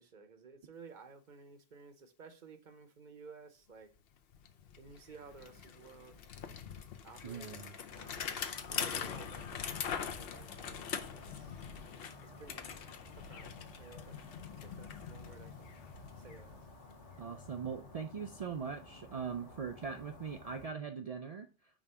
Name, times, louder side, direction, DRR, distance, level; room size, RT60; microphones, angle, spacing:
voice 1, 0.0-3.9 4.8-6.2 7.0-11.6 12.2-12.9 13.1-14.3 14.6-15.8 16.2-16.6, right 5 dB, 50° right, 0.8 m, -55 dB
Bicycle, 4.0-4.1 4.3-17.2, left 7 dB, 60° left, 0.8 m, -43 dB
voice 2, 7.2-7.7 17.2-21.5, right 6 dB, 75° right, 0.3 m, -41 dB
sound 1, 7.9-20.7, left 2 dB, 90° left, 1.7 m, -54 dB
5.1 x 3.5 x 5.4 m
omnidirectional pair, 1.2 m